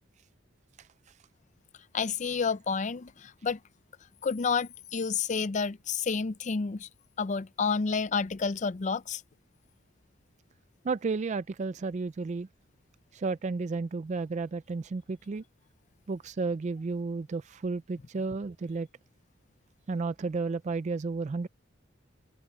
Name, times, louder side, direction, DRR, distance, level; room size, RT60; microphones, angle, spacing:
voice 1, 1.9-3.6 4.2-6.9 7.2-9.2, left 5 dB, 40° left, 0.5 m, -30 dB
voice 2, 10.8-12.5 13.1-15.4 16.1-18.9 19.9-21.5, right 4 dB, 35° right, 0.4 m, -32 dB
head